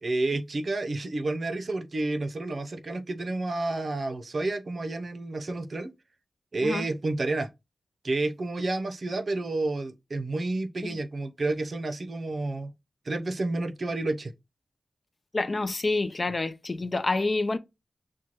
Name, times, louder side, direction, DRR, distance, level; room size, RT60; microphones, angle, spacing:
voice 1, 0.0-5.9 6.5-7.5 8.0-12.7 13.0-14.3, right 2 dB, 60° right, 0.6 m, -30 dB
voice 2, 15.3-17.6, left 3 dB, 45° left, 0.5 m, -28 dB
6.1 x 2.2 x 2.9 m
cardioid pair, 45°, 0 cm